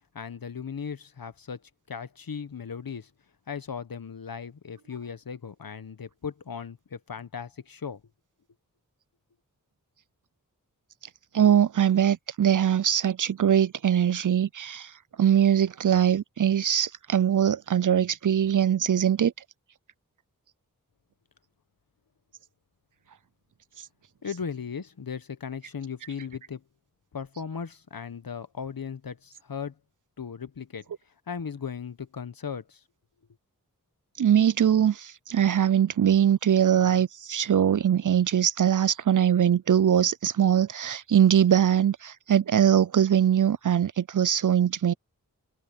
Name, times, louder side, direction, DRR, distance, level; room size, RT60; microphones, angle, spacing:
voice 1, 0.1-1.6 1.9-3.1 3.5-8.0 24.2-26.6 27.1-29.7 30.2-30.9 31.3-32.8, left 6 dB, 75° left, 1.1 m, -37 dB
voice 2, 11.3-14.9 15.2-19.3 34.2-44.9, right 9 dB, 60° right, 0.5 m, -22 dB
wide cardioid pair, 50°, 35 cm